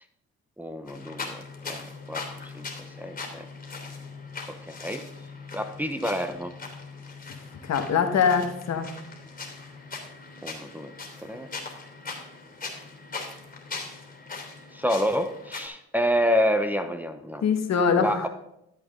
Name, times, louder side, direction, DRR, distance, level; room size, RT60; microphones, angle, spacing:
voice 1, 0.6-1.4 1.7-2.7 3.0-3.4 4.5-5.1 5.5-6.5 10.4-10.9 11.2-11.5 14.7-17.4 18.0-18.3, equal, 5° right, 5 dB, 0.9 m, -28 dB
sound 1, 0.9-15.7, left 4 dB, 30° left, 3.1 m, -40 dB
voice 2, 7.6-8.9 17.4-18.3, left 6 dB, 60° left, 6 dB, 1.7 m, -23 dB
13.0 x 8.0 x 3.8 m, 0.81 s
cardioid pair, 90°, 30 cm